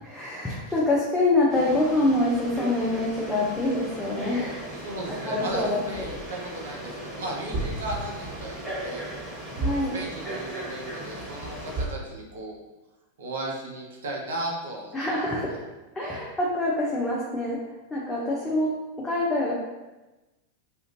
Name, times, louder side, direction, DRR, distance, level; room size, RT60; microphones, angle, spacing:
voice 1, 0.0-4.6 5.3-6.1 9.6-9.9 14.9-15.5 16.0-17.6 17.9-18.7 19.0-19.5, left 2 dB, 10° left, -6 dB, 0.5 m, -25 dB
Frog, 1.5-11.8, right 2 dB, 25° right, 1.1 m, -35 dB
voice 2, 4.7-9.1 9.6-12.6 13.2-15.0, right 1 dB, 65° right, 0 dB, 0.5 m, -35 dB
2.4 x 2.1 x 2.9 m, 1.1 s
figure-of-eight pair, 90°, 0 cm